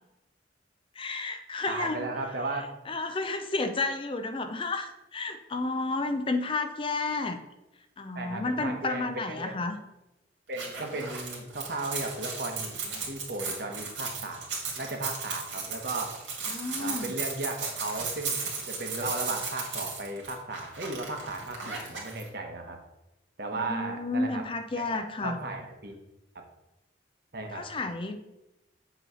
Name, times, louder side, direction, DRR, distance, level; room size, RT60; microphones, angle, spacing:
voice 1, 1.0-2.1 2.9-7.4 8.0-9.8 16.5-17.1 23.5-25.4 27.5-28.2, left 3 dB, 30° left, 7 dB, 0.4 m, -31 dB
voice 2, 1.7-2.6 8.1-9.5 10.5-14.5 14.8-16.1 16.8-18.4 18.7-22.8 23.4-24.4 24.8-24.9 25.2-26.0 26.3-26.4 27.3-27.6, right 2 dB, 55° right, 3 dB, 1.0 m, -35 dB
sound 1, 10.5-22.2, right 5 dB, 85° right, 2.1 m, -36 dB
8.0 x 3.1 x 6.1 m, 0.95 s
head